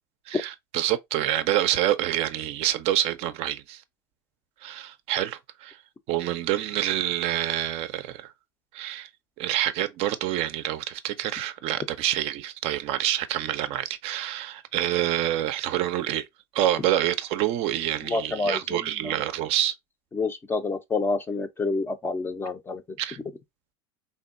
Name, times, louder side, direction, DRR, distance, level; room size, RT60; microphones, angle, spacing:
voice 1, 0.3-3.8 4.6-5.8 6.1-8.3 8.7-9.1 9.4-16.3 16.5-19.8 23.0-23.2, right 12 dB, 50° right, 0.4 m, -27 dB
voice 2, 18.0-19.2 20.1-22.8, left 3 dB, 15° left, 0.4 m, -28 dB
3.5 x 2.2 x 2.4 m
supercardioid pair, 110°, 13 cm